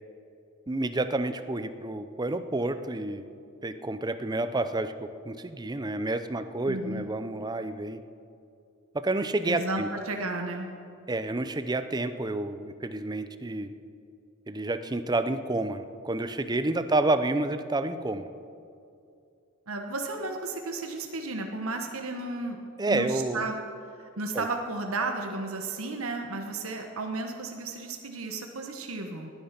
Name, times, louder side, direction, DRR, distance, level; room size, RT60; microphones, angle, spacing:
voice 1, 0.7-3.3 3.6-8.0 8.9-9.9 11.1-13.7 14.5-18.3 22.8-23.5 24.3-24.5, right 2 dB, 20° right, 10 dB, 0.6 m, -29 dB
voice 2, 6.7-7.1 9.5-10.7 19.7-22.6 22.9-23.6 24.0-29.3, right 2 dB, 70° right, 3 dB, 1.2 m, -33 dB
18.5 x 10.5 x 5.9 m, 2.5 s
head